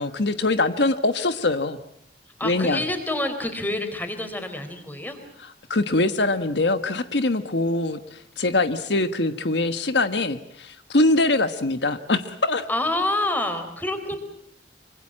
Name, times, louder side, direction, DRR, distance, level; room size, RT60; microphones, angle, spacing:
voice 1, 0.0-1.8 2.4-2.8 5.4-12.7, left 2 dB, 75° left, 10 dB, 1.2 m, -23 dB
voice 2, 2.4-5.2 12.7-14.2, left 1 dB, 10° left, 7 dB, 4.1 m, -27 dB
25.5 x 25.5 x 7.5 m, 0.70 s
head